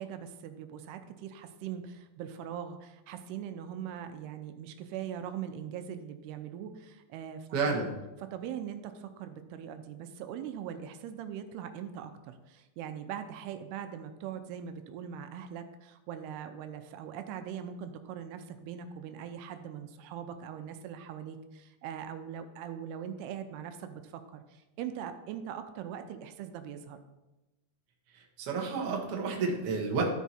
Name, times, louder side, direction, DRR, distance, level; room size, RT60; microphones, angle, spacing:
voice 1, 0.0-7.8 8.3-27.0, right 9 dB, 90° right, 8 dB, 2.7 m, -41 dB
voice 2, 7.5-7.9 28.1-30.1, right 4 dB, 60° right, 0 dB, 1.5 m, -30 dB
13.0 x 4.7 x 4.2 m, 1.0 s
omnidirectional pair, 4.6 m